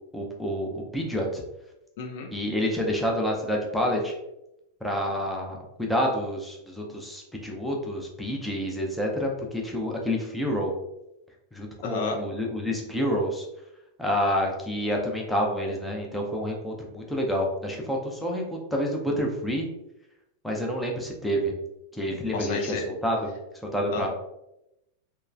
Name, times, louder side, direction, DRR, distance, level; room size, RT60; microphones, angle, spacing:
voice 1, 0.1-1.4 2.3-4.1 4.8-10.7 11.5-13.5 14.0-18.4 18.7-19.7 20.4-21.5 21.9-23.2 23.7-24.1, equal, ahead, -1 dB, 0.5 m, -28 dB
voice 2, 2.0-2.3 11.8-12.2 22.3-22.8 23.9-24.1, left 4 dB, 55° left, 2 dB, 0.4 m, -31 dB
3.0 x 2.0 x 2.4 m, 0.88 s
figure-of-eight pair, 90°, 0 cm